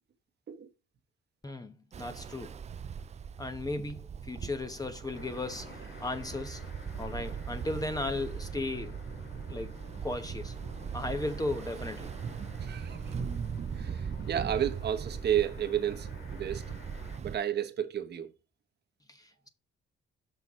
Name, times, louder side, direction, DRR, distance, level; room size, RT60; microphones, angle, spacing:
voice 1, 1.4-2.5 3.4-6.6 7.0-9.0 9.5-9.7 10.0-10.5 10.9-12.1 13.2-13.3 19.1-19.5, left 2 dB, 20° left, 1.0 m, -36 dB
Ocean, 1.9-17.4, right 7 dB, 35° right, 0.4 m, -39 dB
sound 1, 5.1-17.2, left 3 dB, 70° left, 2.8 m, -50 dB
voice 2, 12.6-13.0 13.8-16.6 17.2-18.3, right 10 dB, 55° right, 1.1 m, -32 dB
6.0 x 5.7 x 4.1 m
cardioid pair, 90°, 20 cm